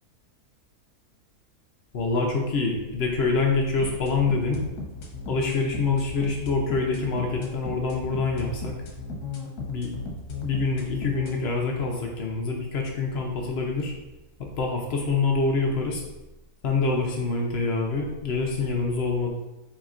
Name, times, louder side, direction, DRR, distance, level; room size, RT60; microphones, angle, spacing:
voice 1, 1.9-4.6 5.3-8.7 9.7-9.9 10.4-13.9 14.5-16.0 16.6-19.3, left 4 dB, 55° left, 0 dB, 0.7 m, -26 dB
sound 1, 3.8-11.4, left 5 dB, 75° left, 1.3 m, -35 dB
4.1 x 3.8 x 2.4 m, 1.0 s
omnidirectional pair, 1.6 m